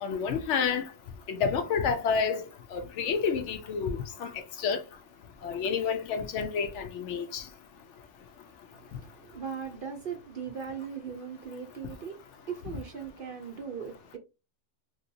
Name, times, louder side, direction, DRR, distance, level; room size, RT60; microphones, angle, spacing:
voice 1, 0.0-0.9 1.3-4.8 5.4-7.4, left 6 dB, 70° left, 0.8 m, -29 dB
voice 2, 8.7-14.2, right 7 dB, 55° right, 0.6 m, -39 dB
3.1 x 2.8 x 2.6 m
omnidirectional pair, 1.3 m